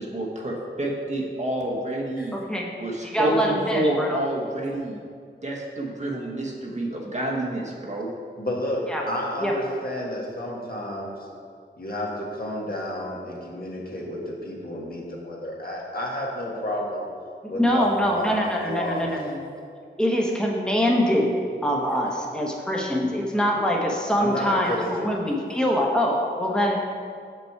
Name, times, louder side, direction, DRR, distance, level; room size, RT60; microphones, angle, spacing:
voice 1, 0.0-2.3 2.8-5.0 5.4-8.1, right 1 dB, 35° right, -2 dB, 1.1 m, -28 dB
voice 2, 2.3-2.7 3.0-4.2 8.9-9.0 9.4-9.5 17.5-19.4 20.0-21.3 21.6-26.8, equal, 5° left, -1 dB, 1.1 m, -24 dB
voice 3, 8.4-11.3 11.8-17.0 17.5-19.1 24.2-25.1, left 1 dB, 50° left, -3 dB, 1.5 m, -31 dB
6.1 x 5.5 x 4.6 m, 2.3 s
wide cardioid pair, 55°, 20 cm